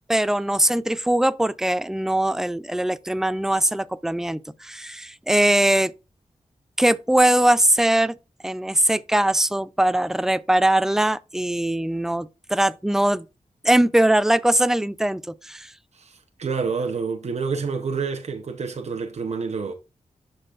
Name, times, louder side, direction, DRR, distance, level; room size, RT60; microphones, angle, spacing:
voice 1, 0.1-5.9 6.8-8.1 8.4-13.3 13.6-15.7, right 1 dB, 5° right, 0.4 m, -21 dB
voice 2, 15.9-19.7, right 5 dB, 60° right, 0.8 m, -28 dB
11.5 x 4.0 x 2.4 m
cardioid pair, 65°, 13 cm